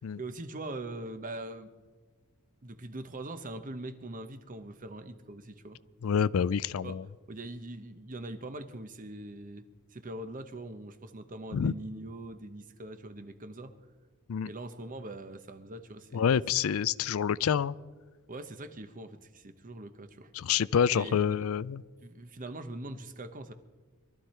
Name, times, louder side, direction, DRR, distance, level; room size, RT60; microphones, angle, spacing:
voice 1, 0.2-1.7 2.6-5.8 6.8-7.0 7.3-9.6 9.9-13.7 14.4-16.4 18.3-20.3 20.9-21.5 22.0-23.5, right 2 dB, 40° right, 10 dB, 1.0 m, -42 dB
voice 2, 6.0-7.0 11.5-11.7 14.3-14.5 16.1-17.7 20.3-21.8, left 7 dB, 70° left, 19 dB, 0.4 m, -27 dB
22.5 x 13.0 x 4.4 m, 1.4 s
head